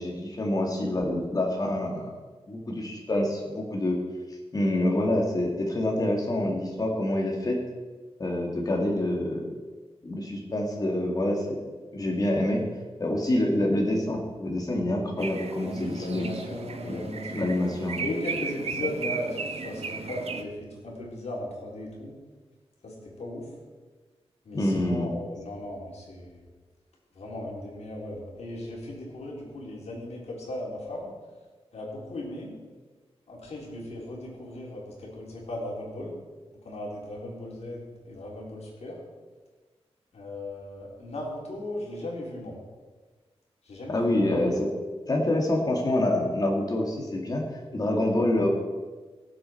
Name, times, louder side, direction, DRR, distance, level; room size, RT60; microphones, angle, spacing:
voice 1, 0.0-2.1 2.5-4.0 4.5-7.6 8.2-9.5 10.0-11.6 11.9-12.6 13.0-16.3 16.8-17.0 17.3-18.0 24.5-25.1 43.9-44.7 45.1-47.4 47.7-48.5, left 1 dB, 35° left, 0 dB, 2.3 m, -26 dB
sound 1, 15.2-20.4, right 5 dB, 70° right, 1.0 m, -35 dB
voice 2, 15.6-17.5 18.0-22.2 22.8-23.5 24.5-26.4 27.1-31.1 31.7-32.5 33.3-36.1 36.6-39.0 40.1-42.6 43.6-44.3, left 1 dB, 80° left, -3 dB, 3.8 m, -37 dB
17.5 x 7.8 x 4.6 m, 1.3 s
wide cardioid pair, 145°, 11 cm